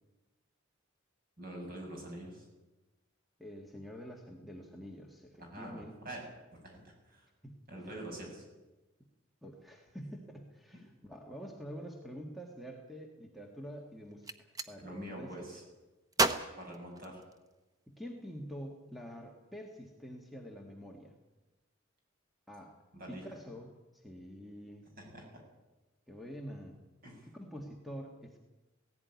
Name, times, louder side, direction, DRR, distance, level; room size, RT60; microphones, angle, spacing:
voice 1, 1.4-2.5 5.4-6.2 6.6-7.2 7.7-8.4 14.8-15.6 16.6-17.2 22.9-23.2 25.0-25.4 27.0-27.3, right 1 dB, 45° right, 0 dB, 7.2 m, -45 dB
voice 2, 3.4-5.9 7.4-7.6 9.4-15.3 16.2-16.5 17.9-21.2 22.5-22.7 23.1-24.9 26.1-26.8 27.2-28.4, equal, ahead, 1 dB, 1.7 m, -47 dB
Gunshot gunfire, 14.1-14.7 16.1-17.6, right 2 dB, 15° right, 0.9 m, -33 dB
17.0 x 16.0 x 9.5 m, 1.1 s
head